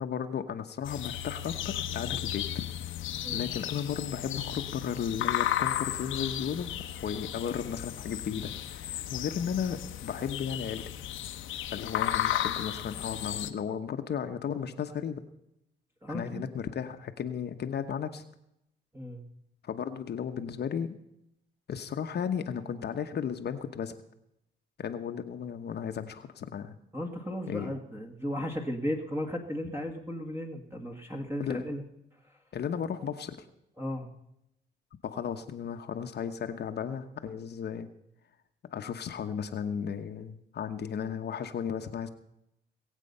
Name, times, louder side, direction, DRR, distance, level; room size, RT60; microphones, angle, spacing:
voice 1, 0.0-2.6 3.3-6.7 7.0-10.8 11.7-15.2 16.1-18.2 19.6-20.9 21.7-23.9 24.8-26.8 27.5-27.7 31.4-31.6 32.5-33.4 35.0-37.9 38.7-42.1, left 7 dB, 55° left, 7 dB, 1.0 m, -34 dB
sound 1, 0.8-13.5, left 12 dB, 80° left, 0.9 m, -34 dB
voice 2, 16.0-16.4 18.9-19.2 26.9-31.8 33.8-34.1, equal, 10° right, 1 dB, 1.8 m, -35 dB
20.0 x 8.3 x 5.5 m, 0.82 s
cardioid pair, 90°, 20 cm